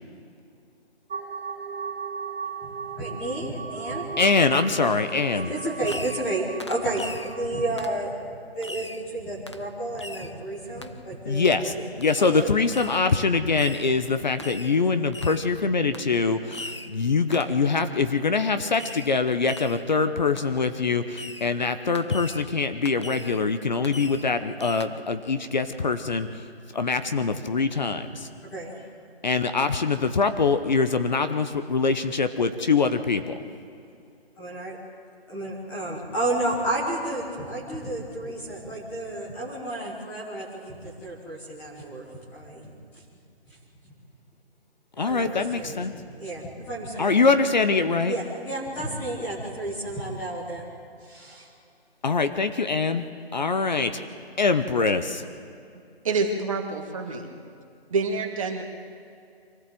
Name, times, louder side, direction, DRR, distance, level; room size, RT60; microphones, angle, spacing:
sound 1, 1.1-7.9, right 6 dB, 65° right, 0.9 m, -37 dB
voice 1, 2.6-4.1 5.5-8.1 8.5-11.7 12.2-12.4 28.5-28.8 34.4-34.8 35.3-42.0 42.3-42.7 43.5-43.6 45.0-47.1 48.1-50.6 51.0-51.5, right 1 dB, 5° left, -5 dB, 1.2 m, -31 dB
voice 2, 4.2-5.5 11.3-26.5 26.7-28.3 29.2-33.4 45.0-45.9 47.0-48.1 52.0-53.0 53.3-54.0 54.4-55.2, left 4 dB, 45° left, 10 dB, 0.9 m, -24 dB
Fireworks, 5.8-6.3 6.6-7.4 7.8-8.0 8.6-9.0 9.5-9.7 10.0-10.3 10.8-10.9 12.0-12.4 12.7-13.1 13.6-13.9 14.4-14.8 15.1-15.5 15.9-16.1 16.5-16.9 17.3-17.6 18.8-19.2 19.5-19.9 20.4-20.5 21.1-21.5 21.9-22.5 22.8-23.4 23.8-24.3 24.6-24.9, left 2 dB, 30° left, 0.5 m, -40 dB
voice 3, 56.0-57.4 57.9-58.6, right 4 dB, 30° right, 3 dB, 1.9 m, -27 dB
24.5 x 15.0 x 7.7 m, 2.5 s
hypercardioid pair, 170°, 32 cm